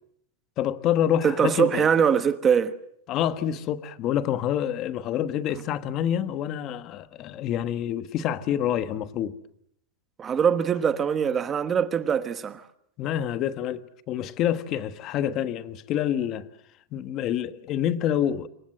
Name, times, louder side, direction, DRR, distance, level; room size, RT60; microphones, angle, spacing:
voice 1, 0.6-1.9 3.1-9.3 13.0-13.8 14.1-16.5 16.9-18.5, left 10 dB, 35° left, 1.3 m, -27 dB
voice 2, 1.2-2.7 10.2-12.6, right 7 dB, 20° right, 1.2 m, -22 dB
27.0 x 24.0 x 7.8 m
supercardioid pair, 150°, 0 cm